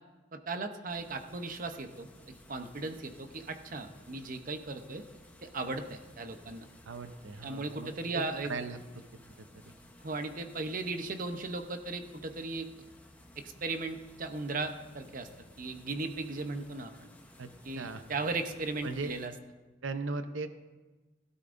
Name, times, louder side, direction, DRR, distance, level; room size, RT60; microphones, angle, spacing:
voice 1, 0.3-2.1 2.5-5.0 5.4-6.7 7.4-8.6 10.0-12.7 13.4-15.3 15.6-17.1 17.6-19.3, right 3 dB, 45° right, 7 dB, 0.8 m, -37 dB
sound 1, 0.9-19.3, left 1 dB, 10° left, 0.9 m, -56 dB
voice 2, 6.9-8.8 9.4-9.7 17.4-18.0 18.8-19.1 19.8-20.5, right 3 dB, 75° right, 9 dB, 0.7 m, -38 dB
16.5 x 12.0 x 2.6 m, 1.2 s
head